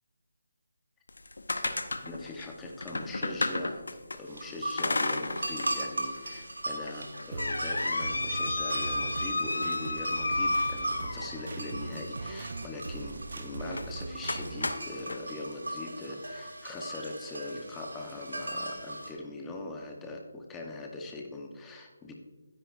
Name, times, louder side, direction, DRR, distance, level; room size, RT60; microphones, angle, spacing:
sound 1, 1.1-4.2 4.8-5.8 6.2-6.3 6.9-11.5 13.7-13.9 14.3-15.2, left 2 dB, 80° left, 0.8 m, -32 dB
voice 1, 2.0-3.8 4.1-22.1, left 2 dB, 10° left, 1 dB, 1.0 m, -41 dB
sound 2, 4.3-19.1, right 1 dB, 90° right, 2.0 m, -39 dB
sound 3, 7.3-14.7, right 3 dB, 60° right, 0.7 m, -40 dB
12.0 x 10.0 x 2.5 m, 1.3 s
figure-of-eight pair, 160°, 0 cm